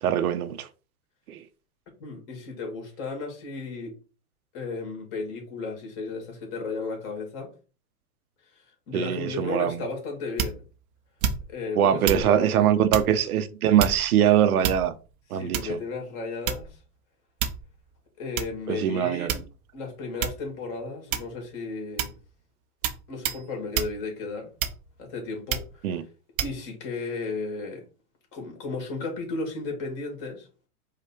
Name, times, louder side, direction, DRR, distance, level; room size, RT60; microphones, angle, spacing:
voice 1, 0.0-0.7 1.3-1.4 8.9-9.9 11.8-14.9 15.3-15.8 18.7-19.4 25.8-26.0, right 10 dB, 70° right, 0.7 m, -23 dB
voice 2, 2.0-3.9 4.5-7.5 8.5-10.6 11.5-12.8 15.3-16.8 18.2-19.4 19.7-22.2 23.1-24.5 25.0-26.0 26.4-27.8 28.3-30.5, left 3 dB, 40° left, 2.4 m, -34 dB
sound 1, 10.4-10.7 11.2-11.6 12.0-12.3 12.9-13.1 13.8-14.2 14.6-15.1 15.5-15.8 16.5-16.8 17.4-17.7 18.4-18.5 19.3-19.7 20.2-20.5 21.1-21.5 22.0-22.2 22.8-23.0 23.2-23.4 23.7-24.0 24.6-25.0 25.5-25.7 26.4-26.6, right 8 dB, 30° right, 0.5 m, -28 dB
4.9 x 2.4 x 4.3 m
hypercardioid pair, 120°, 46 cm